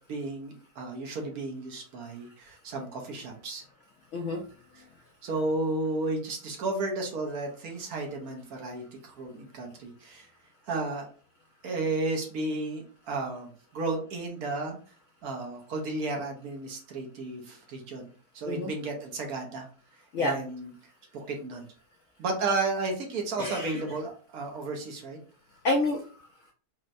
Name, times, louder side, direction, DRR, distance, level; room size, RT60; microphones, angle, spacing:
voice 1, 0.1-3.6 5.2-10.3 10.7-11.1 11.6-14.8 15.2-18.1 18.3-19.7 20.2-20.7 21.1-21.6 22.2-25.2, right 2 dB, 70° right, 2 dB, 1.2 m, -33 dB
voice 2, 23.4-23.8 25.6-26.5, left 2 dB, 70° left, 0 dB, 0.7 m, -29 dB
4.3 x 2.1 x 2.5 m, 0.40 s
omnidirectional pair, 1.8 m